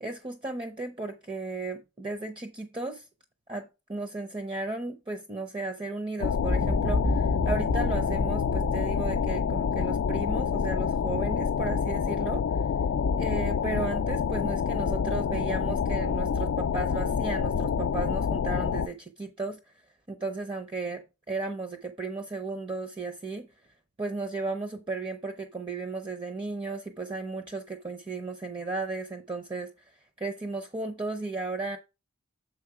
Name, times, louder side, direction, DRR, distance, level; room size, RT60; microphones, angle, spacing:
voice 1, 0.0-3.1 3.5-12.4 13.2-19.6 20.1-23.5 24.0-29.7 30.2-31.8, right 3 dB, 25° right, 0.5 m, -35 dB
space wind(long), 6.2-18.9, left 6 dB, 65° left, 0.3 m, -27 dB
Boom, 6.4-10.7, left 1 dB, 55° right, 0.9 m, -32 dB
7.0 x 4.7 x 4.7 m
head